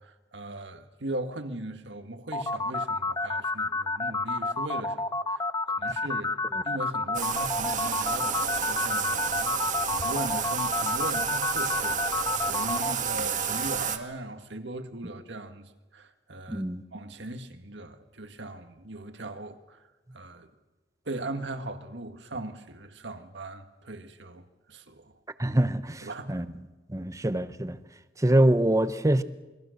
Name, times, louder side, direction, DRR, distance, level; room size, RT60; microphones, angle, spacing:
voice 1, 0.0-16.7 16.9-19.8 20.1-20.5 21.1-25.1 26.0-26.4, right 2 dB, 70° right, 1.9 m, -39 dB
sound 1, 2.3-12.9, left 3 dB, 20° left, 0.8 m, -29 dB
Bathtub (filling or washing), 7.1-14.0, right 7 dB, 45° right, 1.6 m, -30 dB
voice 2, 16.5-16.8 25.4-26.5 26.9-27.8 28.2-29.2, right 1 dB, 20° right, 0.9 m, -24 dB
28.0 x 22.0 x 6.6 m
head